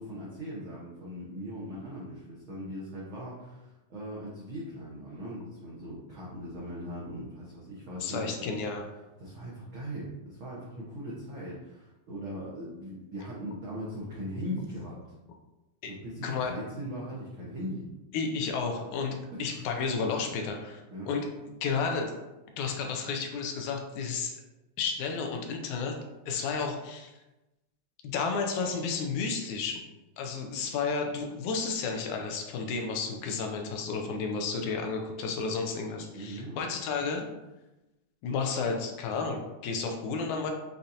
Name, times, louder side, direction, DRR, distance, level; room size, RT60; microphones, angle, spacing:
voice 1, 0.0-8.3 9.2-15.0 15.8-17.9 19.3-19.6 20.9-21.1 36.1-36.6, equal, 85° right, -6 dB, 1.1 m, -39 dB
voice 2, 8.0-8.9 15.8-15.9 16.2-16.5 18.1-20.8 21.1-21.3 21.6-22.1 22.6-24.4 24.8-26.0 26.3-27.1 28.1-29.8 30.2-37.3 38.2-40.5, left 5 dB, 80° left, 3 dB, 1.9 m, -32 dB
6.7 x 2.8 x 2.6 m, 1.0 s
omnidirectional pair, 3.5 m